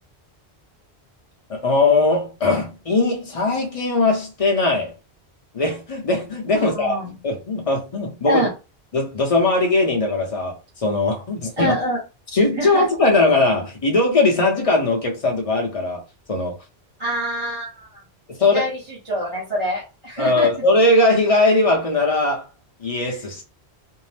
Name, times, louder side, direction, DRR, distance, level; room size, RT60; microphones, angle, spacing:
voice 1, 1.5-4.9 5.5-8.5 8.9-11.8 12.3-16.0 16.3-16.6 18.3-18.7 20.2-22.4 22.8-23.4, left 2 dB, 35° left, 0.7 m, -20 dB
voice 2, 6.6-7.1 8.3-8.5 11.6-12.0 12.6-12.8 17.0-18.0 18.5-20.5, equal, 30° right, 0.8 m, -25 dB
2.7 x 2.0 x 3.2 m
omnidirectional pair, 1.1 m